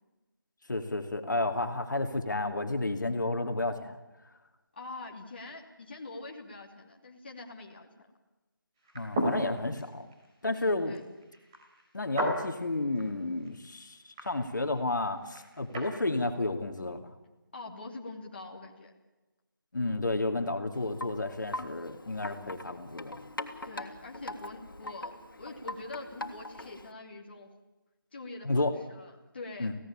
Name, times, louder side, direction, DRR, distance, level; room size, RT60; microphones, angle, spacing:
voice 1, 0.7-4.0 8.9-10.1 10.4-11.0 11.9-17.0 19.7-23.2 28.4-28.7 29.6-29.7, left 2 dB, 60° left, 5 dB, 2.6 m, -31 dB
voice 2, 4.7-7.9 10.5-11.0 17.5-18.9 23.6-27.5 28.1-29.8, left 3 dB, 30° left, 0 dB, 2.7 m, -44 dB
sound 1, 8.8-16.0, right 1 dB, 15° right, 3.9 m, -38 dB
Wind chime, 20.7-26.9, left 1 dB, 75° left, 2.8 m, -42 dB
27.0 x 17.0 x 8.9 m, 1.1 s
figure-of-eight pair, 175°, 12 cm